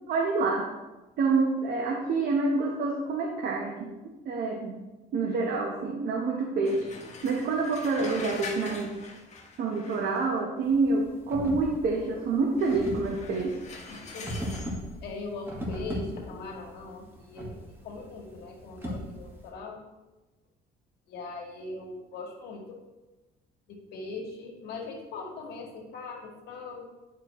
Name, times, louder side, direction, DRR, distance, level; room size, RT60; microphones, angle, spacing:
voice 1, 0.1-0.7 1.2-3.9 4.2-4.8 5.1-6.9 7.2-8.9 9.6-13.6, right 3 dB, 65° right, 0 dB, 1.0 m, -27 dB
sound 1, 6.6-10.4 12.6-14.8, left 4 dB, 40° left, 1.5 m, -43 dB
sound 2, 10.6-19.5, equal, 15° right, 1.7 m, -38 dB
voice 2, 13.9-14.5 15.0-19.8 21.1-22.8 23.7-26.8, left 3 dB, 70° left, 0 dB, 1.8 m, -40 dB
10.0 x 4.7 x 3.1 m, 1.1 s
cardioid pair, 110°, 17 cm